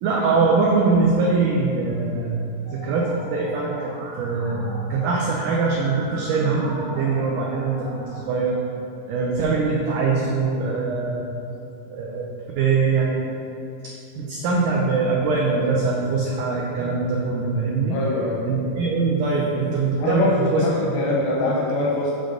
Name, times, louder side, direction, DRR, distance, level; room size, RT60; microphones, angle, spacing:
voice 1, 0.0-2.4 2.7-8.6 9.1-11.2 11.9-12.2 12.6-13.2 13.8-18.0 18.5-20.6, right 4 dB, 90° right, -2 dB, 1.7 m, -22 dB
Musical instrument, 2.7-8.2, right 1 dB, 70° right, 3.4 m, -40 dB
voice 2, 17.9-18.4 20.0-22.1, left 2 dB, 80° left, -3 dB, 1.9 m, -23 dB
7.0 x 3.9 x 6.4 m, 2.8 s
omnidirectional pair, 4.4 m